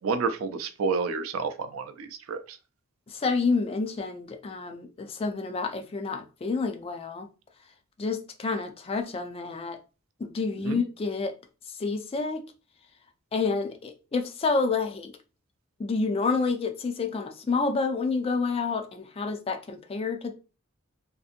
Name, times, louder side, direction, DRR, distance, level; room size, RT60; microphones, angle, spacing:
voice 1, 0.0-2.6 10.6-10.8, right 4 dB, 65° right, 0.4 m, -30 dB
voice 2, 3.1-7.3 8.0-9.8 10.2-11.3 11.8-12.4 13.3-15.1 15.8-20.3, left 4 dB, 25° left, 0.3 m, -29 dB
2.6 x 2.5 x 2.4 m
head